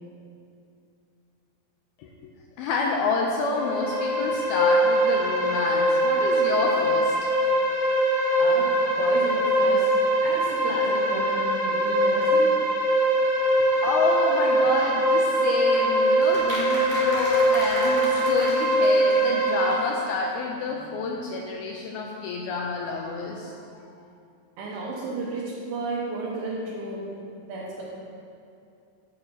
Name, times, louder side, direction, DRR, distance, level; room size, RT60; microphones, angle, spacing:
voice 1, 2.6-7.2 13.8-23.8, left 4 dB, 85° left, 0 dB, 2.3 m, -28 dB
sound 1, 3.4-19.8, right 1 dB, 60° right, 0.5 m, -22 dB
voice 2, 8.4-9.9 10.2-12.6 16.9-17.0 24.6-27.1 27.5-27.8, right 2 dB, 80° right, -7 dB, 3.2 m, -33 dB
sound 2, 15.7-19.4 19.7-19.8 20.0-20.1 20.3-20.4, equal, 60° left, 0.3 m, -35 dB
11.0 x 8.7 x 2.8 m, 2.5 s
omnidirectional pair, 4.9 m